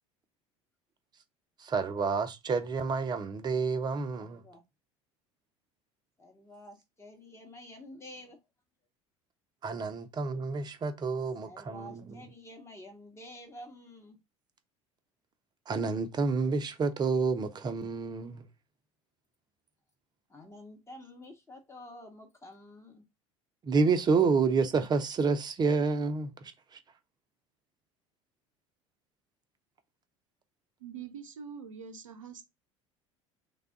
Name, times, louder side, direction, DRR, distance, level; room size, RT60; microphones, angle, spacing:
voice 1, 1.6-4.4 9.6-12.2 15.7-18.4 23.6-26.5, right 4 dB, 25° right, 0.6 m, -29 dB
voice 2, 4.1-4.6 6.2-8.4 11.4-14.2 20.3-23.0, left 1 dB, 15° left, 1.0 m, -49 dB
voice 3, 30.8-32.4, right 7 dB, 75° right, 0.7 m, -44 dB
3.3 x 2.3 x 3.7 m
figure-of-eight pair, 65°, 17 cm